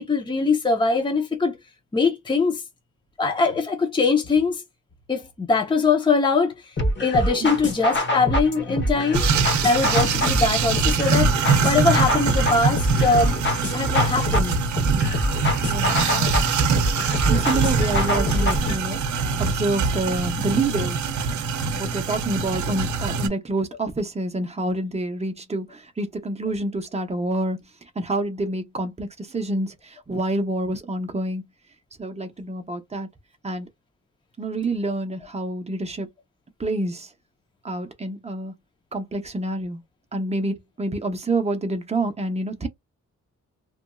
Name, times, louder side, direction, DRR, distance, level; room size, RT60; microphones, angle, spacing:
voice 1, 0.0-1.6 1.9-2.6 3.2-4.6 5.1-6.5 7.0-9.2 9.6-11.3 11.6-13.3 13.7-14.5 16.2-16.3, left 4 dB, 15° left, 0.6 m, -22 dB
sound 1, 6.8-18.8, left 1 dB, 35° left, 1.0 m, -25 dB
sound 2, 9.1-23.3, right 5 dB, 70° right, 0.7 m, -23 dB
voice 2, 15.6-16.0 17.3-19.0 19.4-21.1 21.7-27.6 28.0-29.7 30.1-31.4 32.0-33.1 33.4-33.7 34.4-36.1 36.6-37.1 37.6-38.5 38.9-39.8 40.1-42.7, right 2 dB, 20° right, 0.7 m, -27 dB
3.0 x 2.5 x 2.3 m
wide cardioid pair, 130°, 31 cm